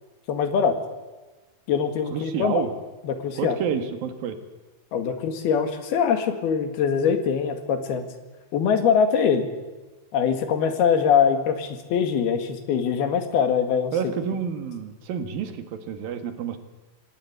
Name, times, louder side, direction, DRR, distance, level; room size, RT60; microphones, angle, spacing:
voice 1, 0.3-0.8 1.7-2.6 3.1-3.6 4.9-8.1 8.5-9.5 10.1-13.9, left 7 dB, 80° left, 7 dB, 3.9 m, -23 dB
voice 2, 2.1-2.7 3.4-4.4 13.9-16.6, right 7 dB, 70° right, 8 dB, 3.4 m, -29 dB
25.5 x 18.0 x 8.1 m, 1.2 s
omnidirectional pair, 4.4 m